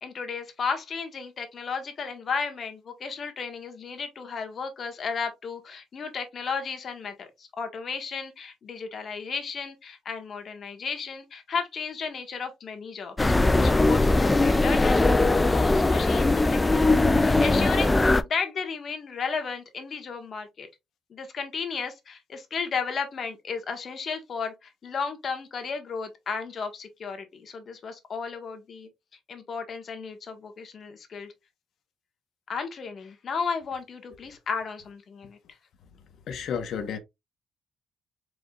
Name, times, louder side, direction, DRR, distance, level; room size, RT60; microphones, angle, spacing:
voice 1, 0.0-20.7 21.1-28.9 29.3-31.3 32.5-35.4, left 5 dB, 50° left, 1.4 m, -34 dB
sound 1, 13.2-18.2, left 2 dB, 20° left, 0.4 m, -20 dB
voice 2, 36.3-37.0, left 7 dB, 70° left, 1.0 m, -31 dB
4.9 x 3.9 x 2.4 m
cardioid pair, 90°, 0 cm